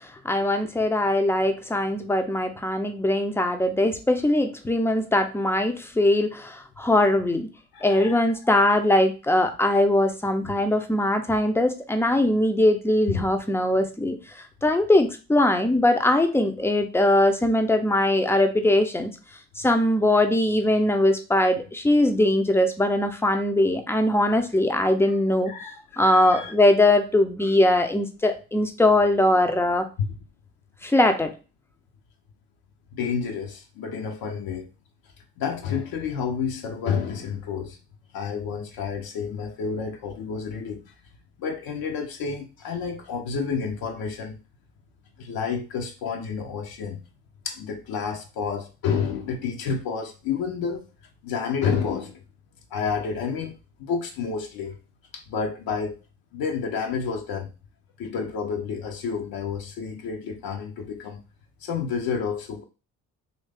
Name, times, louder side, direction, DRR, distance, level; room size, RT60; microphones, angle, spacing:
voice 1, 0.2-7.5 7.8-14.2 14.6-19.1 19.6-25.5 26.0-29.9 30.8-31.3, left 1 dB, 5° left, 0.6 m, -21 dB
voice 2, 7.7-8.2 8.6-8.8 10.4-10.6 13.1-13.2 25.5-26.5 30.0-30.1 32.9-34.7 35.4-37.8 38.1-40.9 41.4-44.4 45.2-47.0 47.4-50.9 51.2-52.2 52.7-53.5 53.8-54.8 55.1-56.0 56.3-57.5 58.0-61.2 61.6-62.6, left 6 dB, 55° left, 0.8 m, -30 dB
3.1 x 2.8 x 3.4 m
hypercardioid pair, 50°, 43 cm